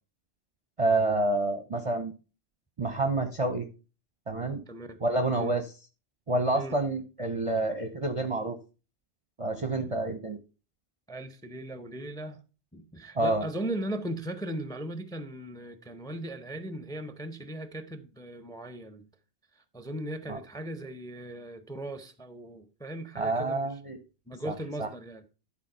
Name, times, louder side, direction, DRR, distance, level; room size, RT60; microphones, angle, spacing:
voice 1, 0.8-2.1 2.8-3.7 4.3-4.6 5.0-5.7 6.3-8.6 9.4-10.4 13.2-13.5 20.3-20.4 23.2-24.0 24.5-24.6 24.8-24.9, right 2 dB, 35° right, 0.7 m, -28 dB
voice 2, 4.7-5.0 5.3-5.5 6.5-6.8 11.1-12.4 12.7-19.1 19.7-23.7 24.3-25.2, right 1 dB, 5° left, 0.6 m, -38 dB
10.5 x 4.2 x 5.4 m
omnidirectional pair, 1.1 m